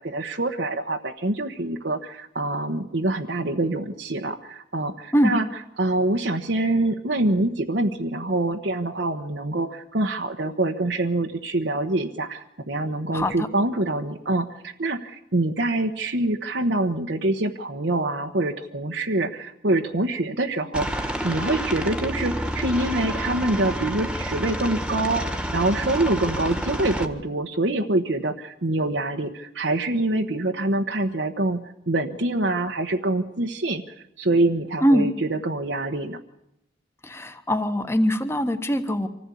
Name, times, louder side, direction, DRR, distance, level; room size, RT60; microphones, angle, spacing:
voice 1, 0.0-5.5 5.8-25.3 25.5-36.2, right 2 dB, 75° right, 4 dB, 1.2 m, -25 dB
Aircraft, 20.7-27.0, equal, 5° right, 1.5 m, -29 dB
voice 2, 37.0-39.1, equal, 15° left, 8 dB, 1.4 m, -22 dB
25.5 x 15.0 x 8.5 m, 0.85 s
head